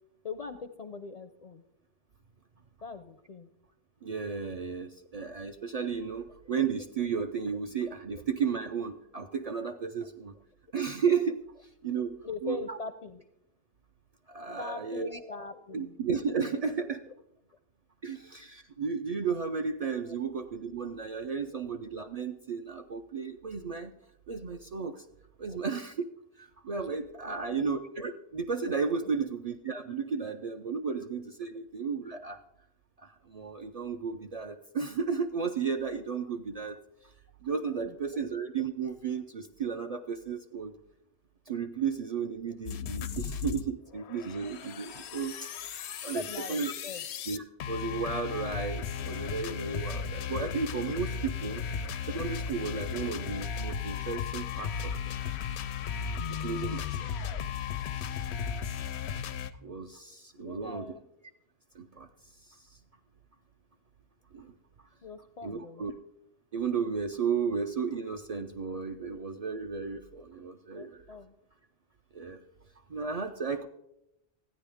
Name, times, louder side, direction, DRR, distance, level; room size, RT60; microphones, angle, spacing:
voice 1, 0.2-1.6 2.8-3.5 8.1-8.2 12.0-13.2 14.6-16.0 20.1-20.2 25.5-25.6 27.3-27.7 29.0-29.3 37.8-37.9 46.1-47.0 60.4-61.1 65.0-65.9 70.7-71.3, left 3 dB, 50° left, 10 dB, 0.5 m, -42 dB
voice 2, 4.0-10.4 10.7-12.8 14.3-15.1 15.7-17.0 18.0-23.9 24.3-25.0 25.4-26.0 26.4-32.4 33.0-36.8 37.0-37.1 37.4-40.7 41.5-46.2 46.5-46.7 47.3-51.6 52.1-55.2 56.3-57.1 57.9-58.3 59.6-60.9 61.7-62.8 64.3-64.5 65.4-65.9 66.5-71.0 72.1-72.4 72.9-73.7, right 5 dB, 50° right, 5 dB, 0.5 m, -34 dB
sound 1, 42.7-43.6 43.9-59.5, left 7 dB, 85° left, 0.9 m, -35 dB
13.5 x 9.6 x 3.5 m, 0.83 s
omnidirectional pair, 1.1 m